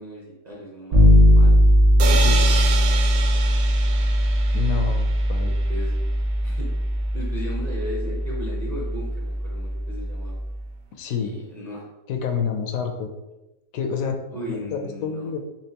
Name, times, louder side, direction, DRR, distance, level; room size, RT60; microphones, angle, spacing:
voice 1, 0.0-1.6 2.0-2.2 5.7-5.9 6.4-6.7 7.1-10.4 11.2-11.9 14.3-15.3, equal, 35° right, -5 dB, 0.8 m, -36 dB
Bass guitar, 0.9-10.6, equal, 50° right, 1.4 m, -19 dB
sound 1, 2.0-5.8, right 5 dB, 75° right, 1.0 m, -29 dB
voice 2, 4.5-5.6 11.0-11.3 12.1-13.1 13.7-14.2 14.5-15.4, left 6 dB, 75° left, 4 dB, 1.0 m, -28 dB
4.4 x 3.6 x 2.8 m, 1.0 s
omnidirectional pair, 1.5 m